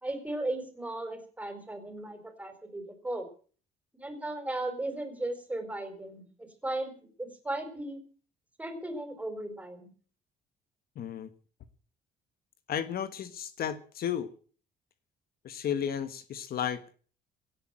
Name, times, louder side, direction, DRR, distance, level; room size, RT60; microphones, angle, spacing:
voice 1, 0.0-3.3 3.9-6.9 7.2-8.0 8.6-9.9, right 2 dB, 10° right, 7 dB, 4.5 m, -36 dB
voice 2, 11.0-11.3 12.7-14.3 15.4-16.9, left 9 dB, 60° left, 13 dB, 1.4 m, -33 dB
17.0 x 8.9 x 8.9 m, 0.43 s
cardioid pair, 120°, 18 cm